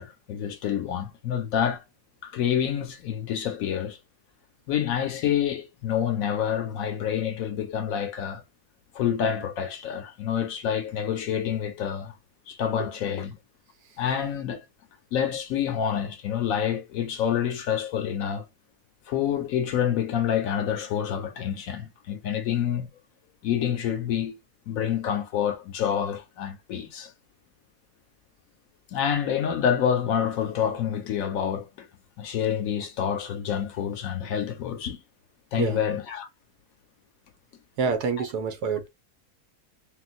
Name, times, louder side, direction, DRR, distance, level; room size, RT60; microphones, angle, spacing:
voice 1, 0.0-1.8 2.2-4.0 4.7-8.4 8.9-12.1 12.5-13.4 14.0-14.6 15.1-18.4 19.1-22.9 23.4-24.4 24.7-27.1 28.9-31.9 32.2-35.0 35.5-36.3 38.2-38.3, left 9 dB, 70° left, 0.9 m, -27 dB
voice 2, 37.8-38.9, right 5 dB, 90° right, 1.4 m, -27 dB
3.7 x 2.2 x 2.5 m
omnidirectional pair, 1.7 m